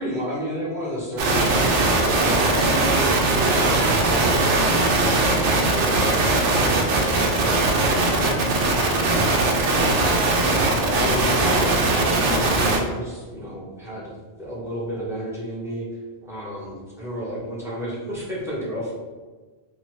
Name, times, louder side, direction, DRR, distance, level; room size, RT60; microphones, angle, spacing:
voice 1, 0.0-10.0 10.5-14.1 14.4-15.9 16.2-18.9, equal, 5° right, -8 dB, 0.9 m, -32 dB
sound 1, 1.2-12.8, right 2 dB, 75° right, 0.9 m, -20 dB
2.7 x 2.7 x 3.0 m, 1.4 s
omnidirectional pair, 1.2 m